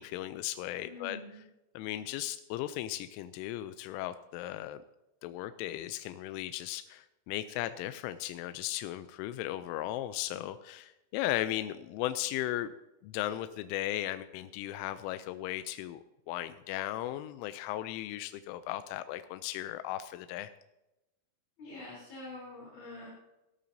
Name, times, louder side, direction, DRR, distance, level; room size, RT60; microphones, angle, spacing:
voice 1, 0.0-1.2 1.7-4.8 5.2-12.7 13.0-16.0 16.3-20.5, left 14 dB, 85° left, 11 dB, 3.0 m, -36 dB
voice 2, 0.8-1.5 21.6-23.1, left 2 dB, 25° left, -7 dB, 3.6 m, -45 dB
17.5 x 12.5 x 2.7 m, 0.94 s
omnidirectional pair, 5.7 m